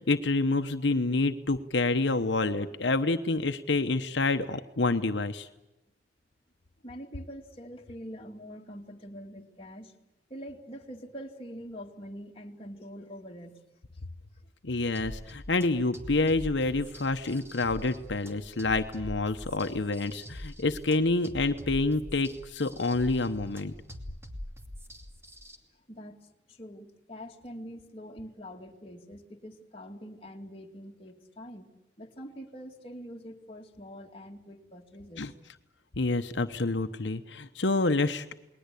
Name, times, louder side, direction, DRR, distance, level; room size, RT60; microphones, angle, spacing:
voice 1, 0.0-5.5 14.6-23.7 35.2-35.3 36.0-38.3, left 3 dB, 90° left, 7 dB, 1.0 m, -28 dB
voice 2, 6.8-9.9 10.3-13.6 25.9-31.7 32.0-35.3, equal, 30° left, 1 dB, 2.4 m, -44 dB
sound 1, 14.9-25.6, equal, 15° right, 2.5 m, -44 dB
29.0 x 20.5 x 8.4 m, 0.93 s
head